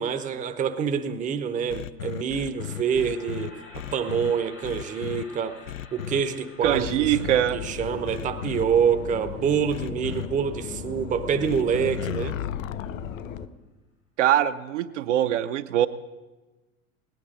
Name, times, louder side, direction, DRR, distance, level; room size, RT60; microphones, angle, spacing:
voice 1, 0.0-5.6 5.9-7.2 7.5-12.4, right 7 dB, 20° right, 9 dB, 0.6 m, -26 dB
sound 1, 1.7-4.3 4.6-5.2 5.7-6.2 6.7-7.3 8.1-8.6 9.7-10.3 11.4-13.4, left 11 dB, 65° left, 0.5 m, -34 dB
sound 2, 2.2-12.3, left 3 dB, 80° left, 3.9 m, -51 dB
sound 3, 6.6-13.5, left 7 dB, 25° left, 0.7 m, -37 dB
voice 2, 6.6-7.6 14.2-15.9, right 12 dB, 55° right, 9 dB, 0.6 m, -23 dB
17.5 x 10.5 x 5.1 m, 1.2 s
figure-of-eight pair, 80°, 43 cm